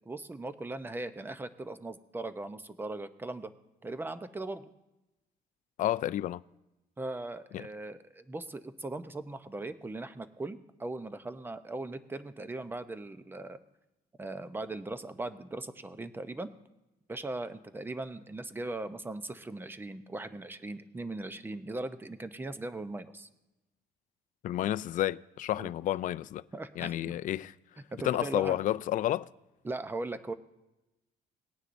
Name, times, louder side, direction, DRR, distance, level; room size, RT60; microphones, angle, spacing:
voice 1, 0.1-3.5 3.8-4.7 7.0-13.6 14.2-16.5 17.1-23.3 25.6-25.7 26.5-27.1 27.9-28.6 29.6-30.3, right 2 dB, 10° right, 0.7 m, -39 dB
voice 2, 5.8-6.4 7.5-7.7 24.4-26.4 26.8-27.5 28.0-29.3, left 13 dB, 50° left, 0.4 m, -30 dB
19.5 x 9.6 x 2.6 m
cardioid pair, 110°, 17 cm